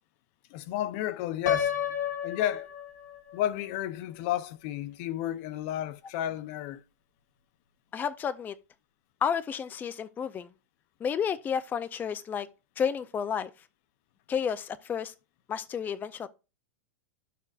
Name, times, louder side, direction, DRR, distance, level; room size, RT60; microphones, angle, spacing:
voice 1, 0.5-1.7 2.2-2.7 3.3-6.8, left 12 dB, 55° left, 0.7 m, -32 dB
Piano, 1.5-3.4, left 9 dB, 90° left, 1.5 m, -31 dB
voice 2, 7.9-8.6 9.2-10.5 11.0-12.5 12.8-13.5 14.3-15.1 15.5-16.3, left 7 dB, 20° left, 0.5 m, -31 dB
11.5 x 6.7 x 2.5 m
hypercardioid pair, 120°, 9 cm